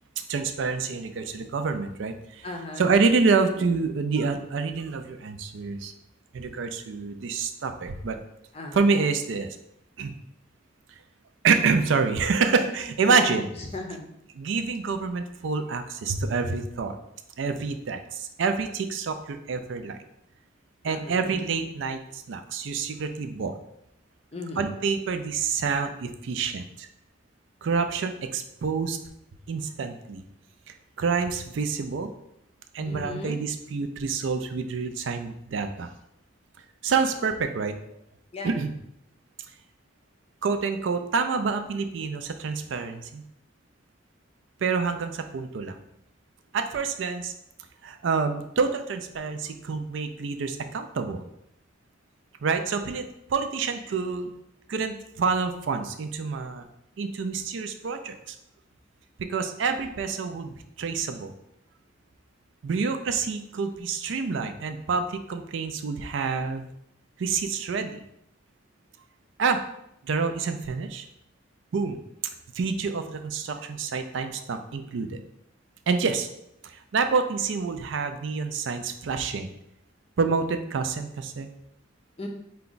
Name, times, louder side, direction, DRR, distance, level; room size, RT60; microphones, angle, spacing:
voice 1, 0.3-2.5 2.8-5.9 6.3-8.2 8.7-9.6 10.0-10.1 11.4-13.5 14.4-17.0 17.4-20.0 20.8-23.5 24.6-26.9 27.6-29.0 29.5-30.2 31.0-32.1 32.7-35.9 36.8-37.8 38.4-38.7 40.4-43.2 44.6-45.8 46.5-47.3 47.8-51.3 52.4-54.3 54.7-56.7 57.0-58.4 59.3-61.3 62.6-66.6 67.2-68.0 69.4-69.6 70.0-71.1 71.7-72.0 72.6-75.2 75.9-76.3 76.6-79.5 80.2-81.5, right 5 dB, 70° right, 7 dB, 0.4 m, -27 dB
voice 2, 2.4-3.0 8.5-8.8 13.1-13.3 13.7-14.1 20.8-21.4 24.3-24.7 32.8-33.4 34.5-34.6 38.3-38.5 82.2-82.3, left 2 dB, 30° left, 2 dB, 0.5 m, -36 dB
4.7 x 2.3 x 3.9 m, 0.78 s
head